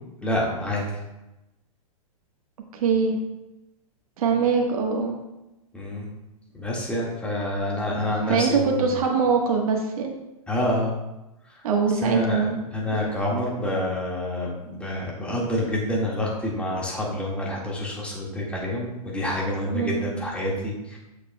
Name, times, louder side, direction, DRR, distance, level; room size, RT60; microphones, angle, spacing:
voice 1, 0.2-0.8 5.7-6.1 6.5-9.0 10.5-11.0 12.0-21.0, left 1 dB, 5° left, -4 dB, 1.7 m, -27 dB
voice 2, 2.8-3.2 4.2-5.2 8.3-10.1 11.6-12.6 12.9-13.1 19.7-20.1, right 5 dB, 70° right, 1 dB, 1.2 m, -23 dB
7.8 x 6.6 x 2.2 m, 0.96 s
hypercardioid pair, 130°, 19 cm